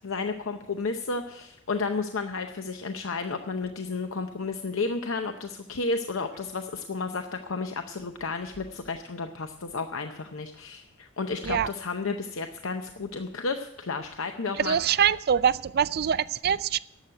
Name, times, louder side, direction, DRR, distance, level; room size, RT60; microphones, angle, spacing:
voice 1, 0.0-14.8, left 4 dB, 65° left, 6 dB, 0.7 m, -32 dB
voice 2, 14.6-16.8, right 8 dB, 45° right, 17 dB, 0.4 m, -24 dB
11.5 x 7.7 x 9.6 m, 0.82 s
head